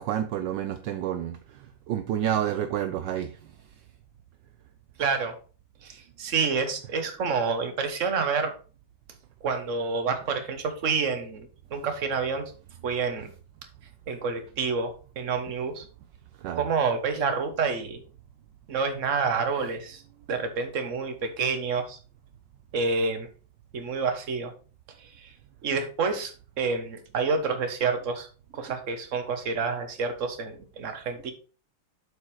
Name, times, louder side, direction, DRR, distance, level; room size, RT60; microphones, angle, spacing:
voice 1, 0.0-3.4 16.4-16.7, right 10 dB, 70° right, 9 dB, 1.2 m, -29 dB
voice 2, 5.0-5.3 5.8-8.5 9.4-12.5 12.8-13.3 14.1-15.8 16.5-18.0 18.7-20.0 20.3-22.0 22.7-23.3 23.7-24.5 25.0-25.3 25.6-28.3 28.5-31.3, right 5 dB, 45° right, 7 dB, 1.4 m, -28 dB
7.9 x 5.3 x 4.8 m, 0.37 s
omnidirectional pair, 2.2 m